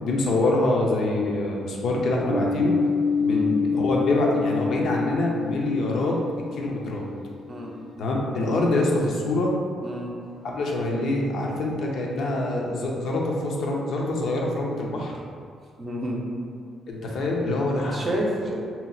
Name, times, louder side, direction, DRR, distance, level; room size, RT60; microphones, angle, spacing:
voice 1, 0.0-2.8 3.2-6.2 6.5-7.1 8.0-9.5 10.4-15.1 16.9-18.1, left 2 dB, 70° left, -1 dB, 0.5 m, -25 dB
sound 1, 2.3-7.8, left 5 dB, 80° right, 0.5 m, -27 dB
voice 2, 3.3-3.6 7.5-7.8 9.8-10.1 15.8-16.3 17.9-18.6, right 1 dB, 35° right, -2 dB, 0.6 m, -29 dB
2.8 x 2.0 x 3.9 m, 2.2 s
cardioid pair, 90°, 0 cm